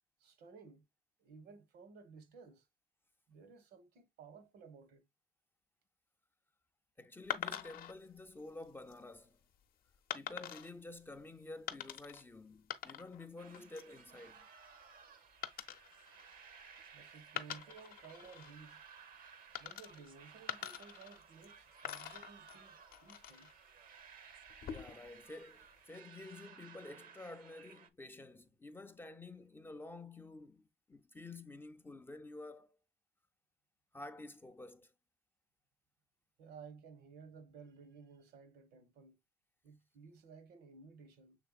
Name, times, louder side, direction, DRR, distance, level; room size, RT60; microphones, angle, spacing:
voice 1, 0.2-0.8 1.2-2.6 3.3-5.0 16.9-18.8 19.6-23.5 36.4-39.2 39.6-41.4, right 5 dB, 75° right, 1.2 m, -56 dB
voice 2, 7.0-9.4 10.1-14.5 24.6-32.7 33.9-34.9, left 2 dB, 15° left, 0.4 m, -50 dB
sound 1, 7.3-7.9 8.6-9.0 10.1-10.7 11.7-12.2 12.5-13.3 13.5-14.0 15.4-16.9 17.3-18.5 19.5-20.1 20.5-21.5 21.8-23.5 24.5-25.1, left 10 dB, 60° left, 0.7 m, -45 dB
sound 2, 13.4-27.9, right 7 dB, 55° right, 0.7 m, -58 dB
6.6 x 3.4 x 2.3 m
cardioid pair, 110°, 17 cm